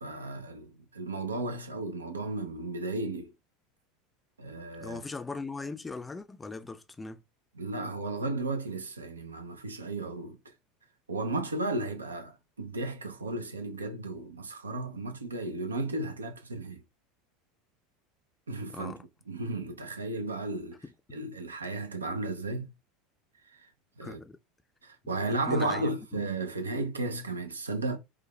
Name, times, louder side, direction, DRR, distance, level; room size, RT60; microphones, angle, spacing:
voice 1, 0.0-3.3 4.4-5.0 7.5-10.4 11.1-16.8 18.5-18.9 19.3-20.8 21.1-22.7 23.5-23.7 24.0-24.2 24.8-28.0, right 2 dB, 85° right, 0.5 m, -34 dB
voice 2, 4.8-7.2 18.7-19.0 20.8-20.9 24.0-24.4 25.5-26.2, left 3 dB, 15° left, 0.4 m, -39 dB
4.6 x 2.2 x 2.2 m
figure-of-eight pair, 75°, 0 cm